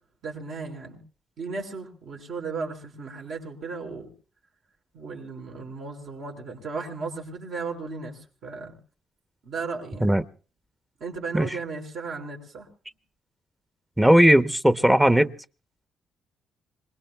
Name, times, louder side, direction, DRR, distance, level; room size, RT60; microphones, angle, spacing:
voice 1, 0.2-1.0 1.4-4.1 4.9-8.7 9.4-10.2 11.0-12.7, right 4 dB, 70° right, 0 dB, 5.4 m, -35 dB
voice 2, 14.0-15.3, equal, 10° right, 12 dB, 0.8 m, -18 dB
26.5 x 20.5 x 2.3 m, 0.39 s
cardioid pair, 70°, 0 cm